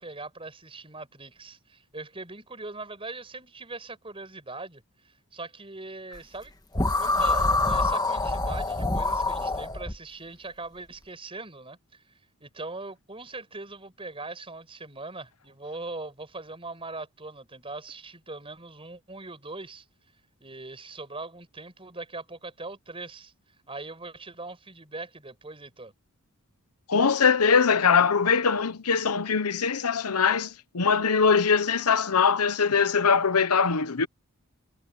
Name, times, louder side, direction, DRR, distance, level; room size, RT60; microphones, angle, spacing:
voice 1, 0.0-4.8 5.3-6.5 7.0-12.0 12.4-19.8 20.4-23.3 23.7-25.9, right 3 dB, 25° right, 5.8 m, -41 dB
sound 1, 6.7-10.0, left 2 dB, 20° left, 1.5 m, -25 dB
voice 2, 26.9-34.1, left 5 dB, 90° left, 1.0 m, -22 dB
head